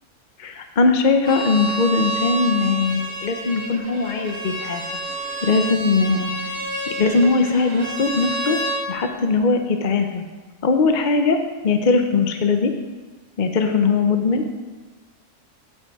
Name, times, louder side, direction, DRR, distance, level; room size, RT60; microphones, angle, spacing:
voice 1, 0.4-4.8 5.4-6.6 7.0-8.6 8.9-10.2 10.6-11.4 11.6-12.7 13.4-14.6, left 4 dB, 45° left, 5 dB, 0.7 m, -20 dB
Bowed string instrument, 1.2-8.8, right 2 dB, 90° right, 1.8 m, -29 dB
15.5 x 5.6 x 4.7 m, 1.3 s
omnidirectional pair, 1.4 m